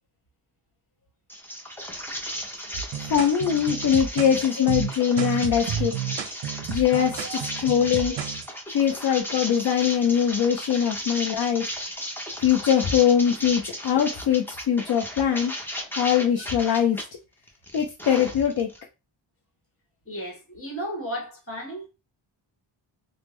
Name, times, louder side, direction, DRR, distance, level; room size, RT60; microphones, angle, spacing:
sound 1, 1.3-17.1 17.5-18.8, equal, 5° left, 0.5 m, -35 dB
sound 2, 2.7-8.5, right 9 dB, 65° right, 0.6 m, -31 dB
voice 1, 3.0-5.9 6.7-7.2 7.6-8.1 8.7-11.7 12.4-15.5 16.0-17.0 17.7-18.7, left 8 dB, 55° left, 0.5 m, -22 dB
voice 2, 20.0-21.9, equal, 30° left, 1.2 m, -35 dB
3.4 x 2.1 x 3.1 m
wide cardioid pair, 145°, 48 cm